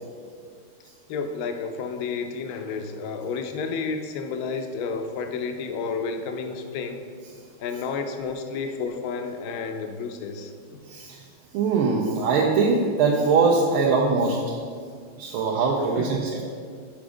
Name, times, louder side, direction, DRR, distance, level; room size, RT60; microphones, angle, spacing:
voice 1, 1.1-7.0 7.6-10.5 16.0-16.2, left 5 dB, 80° left, 6 dB, 0.8 m, -31 dB
voice 2, 10.9-11.2 11.5-14.6 15.2-16.4, right 4 dB, 90° right, -2 dB, 1.6 m, -22 dB
7.2 x 5.0 x 4.9 m, 2.1 s
omnidirectional pair, 2.3 m